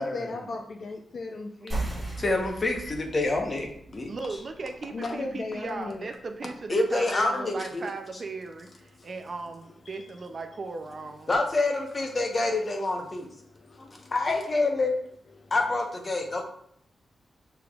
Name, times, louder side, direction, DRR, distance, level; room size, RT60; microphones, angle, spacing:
voice 1, 0.0-1.8 4.9-6.1 9.0-9.1 9.9-10.0 13.5-14.1 15.4-15.5, left 3 dB, 55° left, 1 dB, 0.4 m, -36 dB
sound 1, 1.7-6.8, right 2 dB, 25° right, 1.8 m, -38 dB
voice 2, 2.2-4.1 6.7-7.9 11.3-13.3 13.8-15.0 15.5-16.4, left 2 dB, 30° left, 2 dB, 0.8 m, -27 dB
voice 3, 4.1-11.3, right 3 dB, 45° right, 5 dB, 0.4 m, -37 dB
6.7 x 3.4 x 2.3 m, 0.68 s
wide cardioid pair, 120°, 0 cm